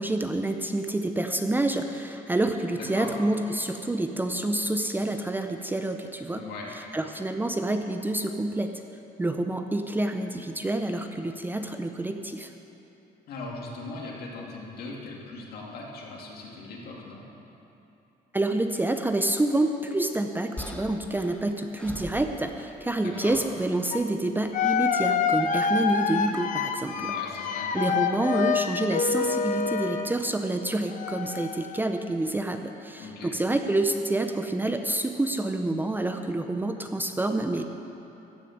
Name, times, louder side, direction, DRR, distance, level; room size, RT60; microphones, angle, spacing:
voice 1, 0.0-6.4 6.9-8.7 9.2-12.5 18.3-27.1 27.7-37.6, right 2 dB, 10° right, 6 dB, 0.6 m, -28 dB
voice 2, 2.7-3.1 6.3-6.7 13.3-17.2 23.0-23.4 26.9-27.7 33.0-33.4, left 3 dB, 65° left, -2 dB, 2.4 m, -39 dB
sound 1, 20.6-22.8 23.1-23.5 24.6-24.9 26.2-26.5, left 1 dB, 5° left, 1.1 m, -42 dB
sound 2, 23.9-24.0 24.5-30.2 30.9-31.8, left 6 dB, 50° left, 0.7 m, -27 dB
15.0 x 6.6 x 6.5 m, 2.9 s
cardioid pair, 110°, 17 cm